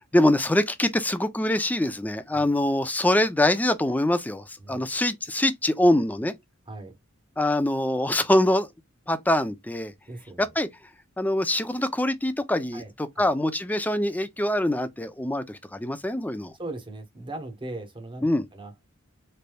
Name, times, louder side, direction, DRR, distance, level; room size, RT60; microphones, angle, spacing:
voice 1, 0.1-6.3 7.4-8.7 9.1-9.9 10.4-10.7 11.2-16.5 18.2-18.5, left 1 dB, 10° left, 0.4 m, -24 dB
voice 2, 10.1-10.5 12.7-12.9 16.6-18.3 18.5-18.7, right 2 dB, 25° right, 1.0 m, -38 dB
4.0 x 3.3 x 2.2 m
head